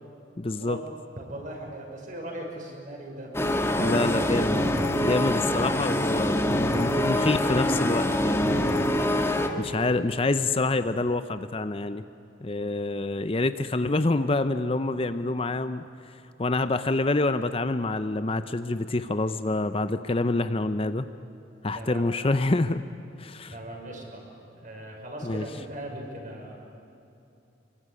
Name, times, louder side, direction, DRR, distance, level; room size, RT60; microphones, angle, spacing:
voice 1, 0.4-0.8 3.8-4.6 4.9-8.9 9.3-12.0 12.4-21.1 21.6-22.8 23.2-23.6 25.2-25.5, left 2 dB, 30° left, 11 dB, 0.6 m, -27 dB
voice 2, 1.2-3.3 3.7-4.4 21.7-22.1 23.5-24.2 24.6-26.5, right 1 dB, 45° right, 0 dB, 6.0 m, -38 dB
sound 1, 3.3-9.5, left 1 dB, 15° left, 1.7 m, -25 dB
27.0 x 23.0 x 9.8 m, 2.7 s
head